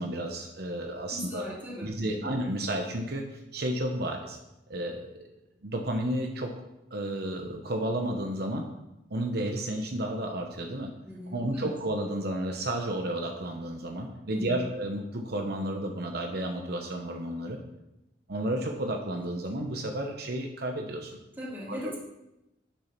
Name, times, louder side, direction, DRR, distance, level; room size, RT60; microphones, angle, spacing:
voice 1, 0.0-1.5 1.8-4.4 4.7-5.2 5.6-6.5 6.9-8.7 9.1-10.9 11.3-17.6 18.3-21.2 21.7-22.0, right 1 dB, 60° right, 3 dB, 1.0 m, -32 dB
voice 2, 1.1-2.3 11.0-11.7 14.3-14.7 21.4-22.0, equal, 10° right, -6 dB, 3.3 m, -39 dB
9.1 x 7.4 x 5.9 m, 0.93 s
head